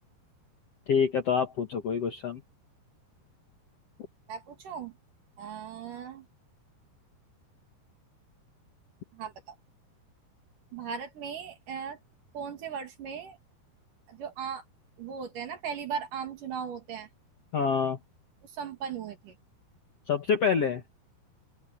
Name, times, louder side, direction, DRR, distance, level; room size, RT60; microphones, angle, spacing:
voice 1, 0.9-2.4 17.5-18.0 20.1-20.8, left 6 dB, 55° left, 1.8 m, -26 dB
voice 2, 4.3-5.0 5.4-6.3 9.1-9.6 10.7-12.0 12.3-13.4 14.1-14.6 15.0-17.1 18.4-19.4, right 7 dB, 55° right, 3.5 m, -38 dB
open air
omnidirectional pair, 4.8 m